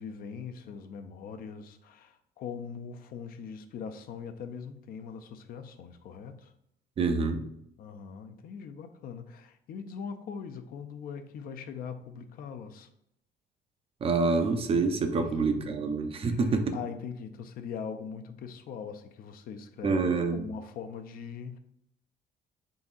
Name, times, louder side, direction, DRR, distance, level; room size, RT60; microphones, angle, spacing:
voice 1, 0.0-6.5 7.8-12.9 15.1-15.8 16.3-21.6, left 6 dB, 60° left, 0.4 m, -41 dB
voice 2, 7.0-7.4 14.0-16.7 19.8-20.4, right 4 dB, 35° right, 0.5 m, -27 dB
3.9 x 3.5 x 2.4 m
cardioid pair, 110°, 17 cm